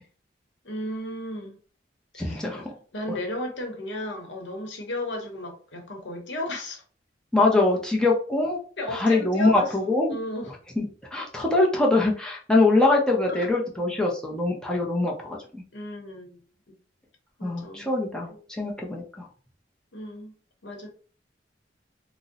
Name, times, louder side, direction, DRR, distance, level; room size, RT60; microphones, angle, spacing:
voice 1, 0.6-1.6 2.1-2.6 2.9-6.8 8.8-10.5 13.3-13.5 15.7-16.4 16.7-16.8 17.4-17.9 18.3-18.4 19.9-20.3 20.6-20.9, left 1 dB, 85° left, 0.8 m, -34 dB
voice 2, 2.2-2.6 7.3-8.6 8.9-10.2 10.8-10.9 11.1-15.6 17.4-18.3 18.6-19.2, left 2 dB, 5° left, 0.5 m, -23 dB
2.6 x 2.0 x 3.8 m
head